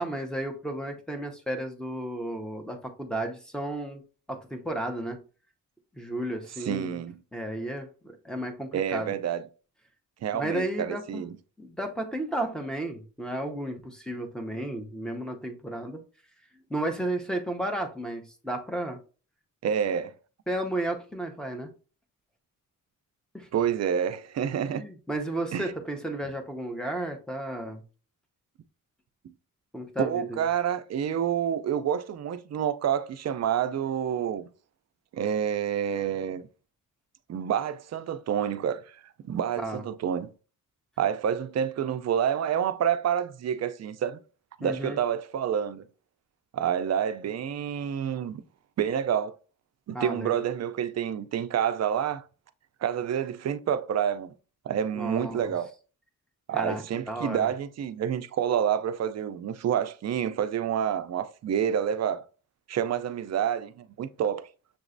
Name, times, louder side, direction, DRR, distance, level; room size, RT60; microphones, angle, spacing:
voice 1, 0.0-4.0 4.3-5.2 6.0-7.0 7.3-9.1 10.3-11.3 11.6-16.0 16.7-19.0 20.5-21.7 23.3-23.5 24.7-27.8 29.7-30.4 39.6-39.8 44.6-45.0 49.9-50.4 55.0-55.5 56.5-56.8 57.1-57.5, right 1 dB, ahead, 0.7 m, -33 dB
voice 2, 6.6-7.2 8.7-9.4 10.2-11.4 19.6-20.1 23.5-24.8 25.5-25.7 30.0-34.5 35.1-36.4 37.3-40.3 41.0-44.2 44.6-45.8 46.5-48.4 48.8-49.4 49.9-52.2 52.8-54.3 54.7-55.7 56.5-62.2 62.7-64.5, right 9 dB, 50° right, 0.4 m, -28 dB
6.7 x 3.0 x 2.6 m
wide cardioid pair, 155°, 34 cm